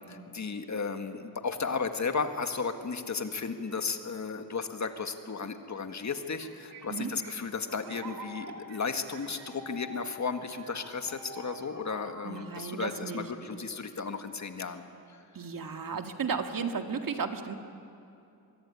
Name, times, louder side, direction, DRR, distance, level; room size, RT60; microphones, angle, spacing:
voice 1, 0.0-14.8 15.1-15.2, left 5 dB, 45° left, 7 dB, 1.8 m, -34 dB
sound 1, 6.2-13.7, right 2 dB, 85° right, 2.5 m, -48 dB
voice 2, 12.2-13.3 15.3-17.5, right 5 dB, 60° right, 6 dB, 2.0 m, -34 dB
24.5 x 22.5 x 9.8 m, 2.7 s
cardioid pair, 95°, 38 cm